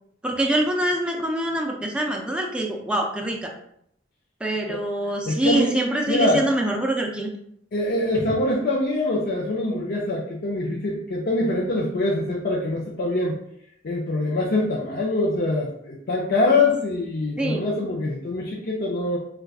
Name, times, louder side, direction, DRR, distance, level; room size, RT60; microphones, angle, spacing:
voice 1, 0.2-3.5 4.4-7.3 17.4-17.6, right 1 dB, 5° right, 0 dB, 0.4 m, -24 dB
voice 2, 5.3-5.7 6.1-6.5 7.7-13.4 13.8-19.2, left 2 dB, 50° left, -3 dB, 0.5 m, -24 dB
4.6 x 2.3 x 2.3 m, 0.71 s
head